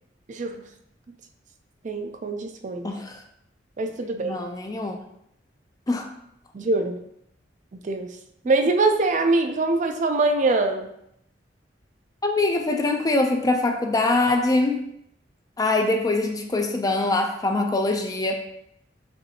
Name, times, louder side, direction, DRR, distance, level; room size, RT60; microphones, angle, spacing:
voice 1, 0.3-0.6 1.8-2.9 3.8-4.4 6.5-7.0 7.7-8.1 8.5-10.9, right 3 dB, 45° right, 6 dB, 0.4 m, -23 dB
voice 2, 2.8-3.2 4.2-5.0 5.9-6.1 12.2-14.8 15.6-18.4, left 2 dB, 20° left, 3 dB, 0.5 m, -23 dB
6.7 x 2.6 x 2.9 m, 0.74 s
head